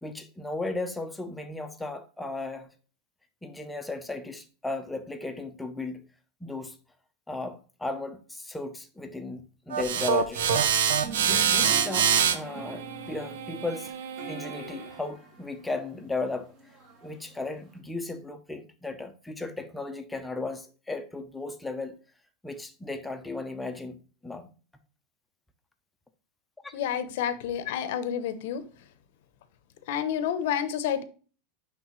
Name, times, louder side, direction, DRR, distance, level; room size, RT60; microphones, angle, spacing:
voice 1, 0.0-2.7 3.4-6.0 6.4-6.8 7.3-10.6 10.9-13.9 14.3-16.5 17.0-22.0 22.4-24.5 26.6-26.7, left 3 dB, 5° left, 0.7 m, -36 dB
sound 1, 9.7-14.9, right 7 dB, 85° right, 0.7 m, -26 dB
sound 2, 11.0-17.8, right 3 dB, 35° right, 1.9 m, -44 dB
voice 2, 26.7-28.6 29.9-31.0, left 9 dB, 70° left, 0.8 m, -29 dB
9.6 x 3.5 x 3.1 m
supercardioid pair, 145°, 0 cm